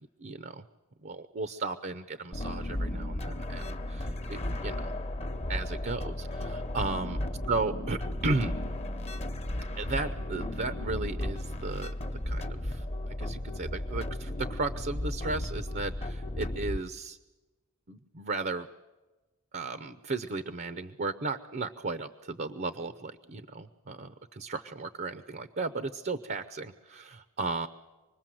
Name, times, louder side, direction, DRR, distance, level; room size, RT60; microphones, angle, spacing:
voice 1, 0.2-0.6 1.0-4.9 5.5-7.2 7.5-8.6 9.8-11.9 12.3-17.2 17.9-18.7 19.5-27.7, right 3 dB, 45° right, 12 dB, 0.7 m, -35 dB
sound 1, 2.3-16.8, left 1 dB, 30° left, 1.0 m, -34 dB
26.0 x 20.5 x 7.7 m, 1.1 s
head